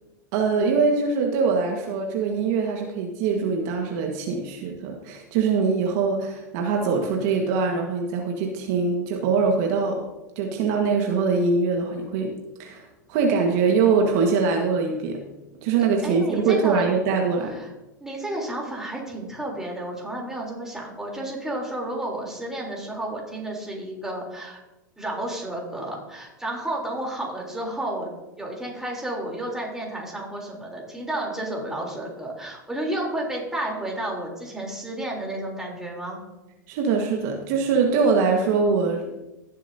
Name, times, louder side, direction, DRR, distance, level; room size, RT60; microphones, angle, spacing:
voice 1, 0.3-10.0 10.3-12.3 12.6-15.2 15.6-17.5 36.7-39.1, right 5 dB, 55° right, 2 dB, 1.6 m, -23 dB
voice 2, 16.0-16.9 17.5-17.7 18.0-24.6 25.0-28.1 28.4-36.2, right 1 dB, 5° right, -2 dB, 3.5 m, -31 dB
17.0 x 7.4 x 2.8 m, 1.0 s
hypercardioid pair, 100°, 10 cm